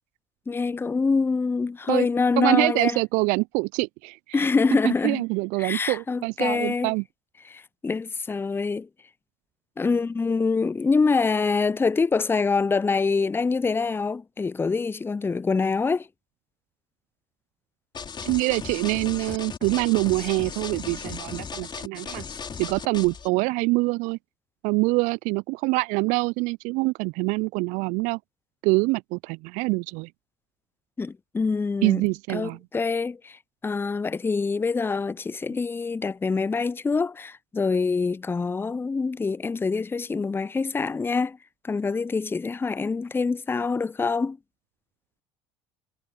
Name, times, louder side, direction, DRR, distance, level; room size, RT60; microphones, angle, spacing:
voice 1, 0.5-3.0 4.3-5.2 5.6-6.9 7.4-8.9 9.8-16.1 31.0-32.0 32.3-41.4 41.6-44.4, left 4 dB, 15° left, 0.6 m, -25 dB
voice 2, 2.4-4.4 4.8-7.0 18.2-22.2 22.6-24.2 24.6-28.2 28.6-30.1 31.8-32.6, right 26 dB, 60° right, 0.4 m, -25 dB
sound 1, 17.9-23.3, left 6 dB, 30° left, 2.7 m, -36 dB
hypercardioid pair, 70°, 15 cm